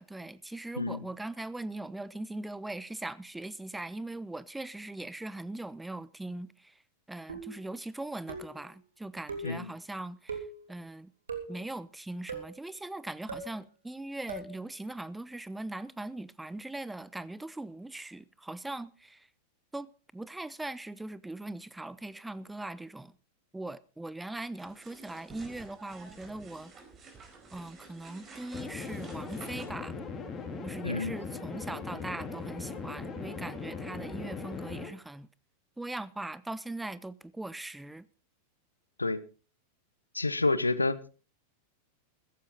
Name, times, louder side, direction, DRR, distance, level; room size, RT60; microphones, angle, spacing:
voice 1, 0.0-6.7 7.1-11.1 11.5-19.3 19.7-23.1 23.5-26.7 27.5-30.0 30.6-35.3 35.8-38.1, right 2 dB, 5° right, 0.7 m, -40 dB
sound 1, 7.3-7.7 8.3-8.7 9.3-9.6 10.3-10.6 11.3-11.6 12.3-12.6 13.3-13.5 14.3-14.6, right 4 dB, 70° right, 3.2 m, -40 dB
sound 2, 24.6-29.7, right 4 dB, 25° right, 4.7 m, -51 dB
sound 3, 28.5-34.9, left 4 dB, 20° left, 4.0 m, -39 dB
voice 2, 30.8-31.2 39.0-39.2 40.1-41.0, left 3 dB, 80° left, 0.9 m, -29 dB
15.5 x 14.5 x 4.0 m
figure-of-eight pair, 90°, 0 cm